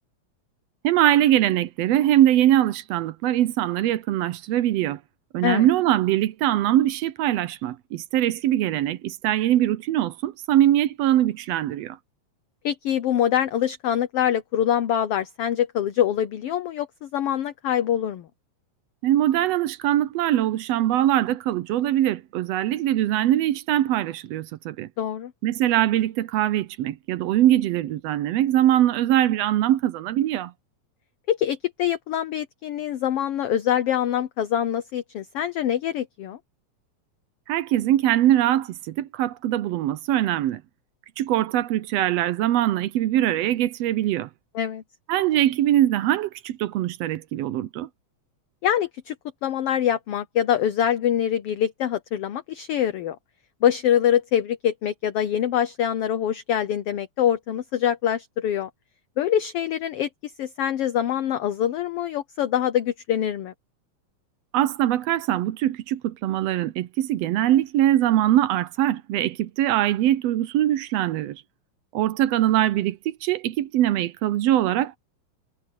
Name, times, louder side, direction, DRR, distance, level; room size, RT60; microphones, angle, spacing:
voice 1, 0.8-5.0 5.3-12.0 19.0-24.9 25.4-30.5 37.5-40.6 41.2-44.3 45.1-47.9 64.5-71.4 71.9-75.0, right 13 dB, 75° right, 1.6 m, -22 dB
voice 2, 12.6-18.3 25.0-25.3 31.3-36.4 44.5-44.8 48.6-49.1 49.4-53.2 53.6-58.7 59.2-60.1 60.4-63.5, left 10 dB, 65° left, 1.6 m, -24 dB
omnidirectional pair, 3.3 m